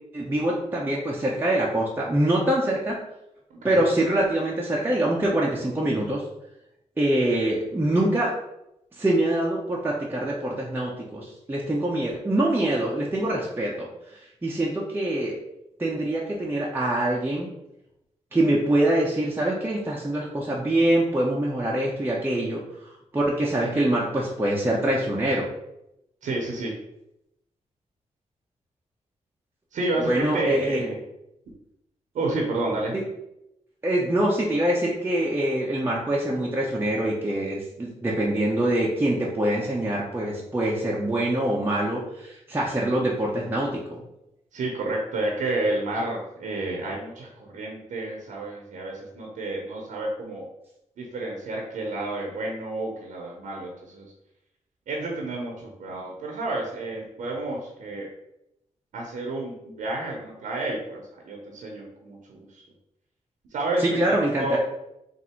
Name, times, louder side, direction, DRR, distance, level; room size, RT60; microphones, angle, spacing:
voice 1, 0.1-3.0 3.6-6.2 7.0-8.3 9.0-13.9 14.4-15.4 15.8-17.5 18.3-22.6 23.1-25.5 30.0-30.8 32.9-33.0 33.8-44.0 63.8-64.6, right 1 dB, 15° right, -4 dB, 0.8 m, -24 dB
voice 2, 26.2-26.7 29.7-31.0 32.1-32.9 44.5-50.4 51.0-54.1 54.9-58.1 58.9-62.6 63.5-64.6, right 2 dB, 85° right, 0 dB, 0.9 m, -30 dB
3.8 x 2.7 x 4.4 m, 0.84 s
cardioid pair, 80°, 13 cm